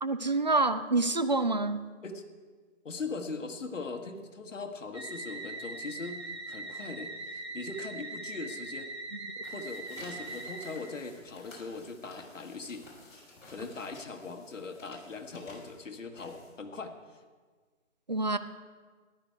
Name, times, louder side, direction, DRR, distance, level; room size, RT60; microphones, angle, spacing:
voice 1, 0.0-1.9 18.1-18.4, right 3 dB, 35° right, 11 dB, 0.4 m, -27 dB
voice 2, 2.8-8.9 9.5-12.8 13.5-16.9, left 3 dB, 65° left, 5 dB, 1.6 m, -40 dB
sound 1, 4.9-11.0, right 2 dB, 50° right, 2.0 m, -41 dB
sound 2, 9.3-16.8, left 2 dB, 35° left, 4.7 m, -53 dB
14.0 x 11.5 x 4.7 m, 1.5 s
figure-of-eight pair, 160°, 40 cm